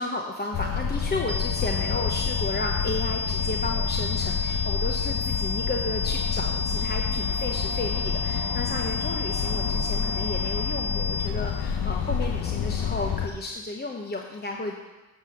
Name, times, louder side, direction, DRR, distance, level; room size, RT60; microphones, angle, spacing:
voice 1, 0.0-14.8, left 2 dB, 25° left, 1 dB, 0.7 m, -33 dB
sound 1, 0.5-13.3, left 7 dB, 65° left, 0.8 m, -28 dB
sound 2, 1.3-11.3, left 4 dB, 50° right, 1.0 m, -32 dB
8.0 x 5.1 x 6.5 m, 1.1 s
cardioid pair, 75°, 41 cm